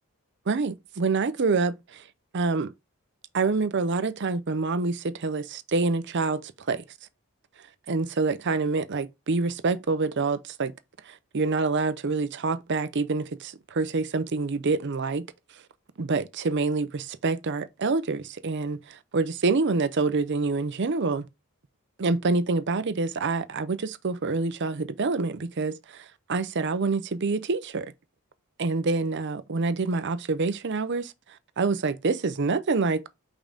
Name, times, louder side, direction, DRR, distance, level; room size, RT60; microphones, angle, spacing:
voice 1, 0.5-2.0 2.3-2.7 3.3-6.8 7.9-10.7 11.1-15.3 16.0-21.2 22.0-27.9 28.6-31.1 31.6-33.1, right 3 dB, 50° right, 0.6 m, -26 dB
5.4 x 3.7 x 5.1 m
head